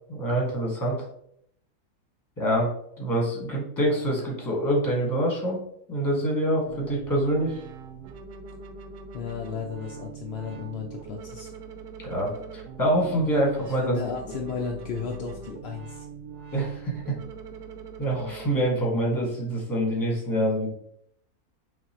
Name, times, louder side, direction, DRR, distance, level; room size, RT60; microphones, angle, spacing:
voice 1, 0.1-1.0 2.4-2.7 3.0-5.6 5.9-7.6 12.0-13.9 16.5-17.1 18.0-20.7, right 1 dB, 15° left, -3 dB, 1.2 m, -25 dB
sound 1, 6.7-18.7, right 5 dB, 85° right, 1.1 m, -42 dB
voice 2, 9.1-11.5 13.6-16.0, left 5 dB, 75° left, 1 dB, 0.6 m, -34 dB
5.9 x 2.6 x 2.9 m, 0.71 s
omnidirectional pair, 1.6 m